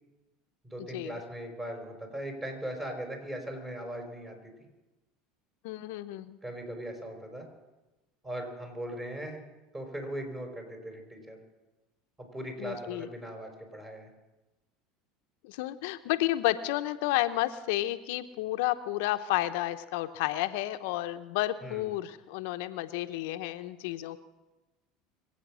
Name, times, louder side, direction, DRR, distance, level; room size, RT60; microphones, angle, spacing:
voice 1, 0.6-4.7 6.4-7.5 8.2-9.4 9.7-11.4 12.2-14.1 21.6-21.9, right 1 dB, 20° right, 3 dB, 4.7 m, -39 dB
voice 2, 5.6-6.4 12.6-13.1 15.4-24.2, left 15 dB, 75° left, 10 dB, 0.7 m, -31 dB
24.5 x 8.7 x 6.2 m, 1.1 s
supercardioid pair, 95°, 0 cm